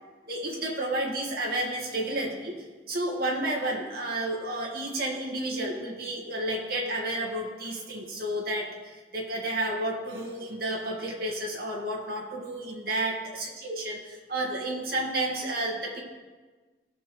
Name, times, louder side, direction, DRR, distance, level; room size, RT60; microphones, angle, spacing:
voice 1, 0.3-2.6 2.9-8.7 9.1-16.0, right 1 dB, 55° right, -3 dB, 2.2 m, -31 dB
17.5 x 6.2 x 3.3 m, 1.3 s
head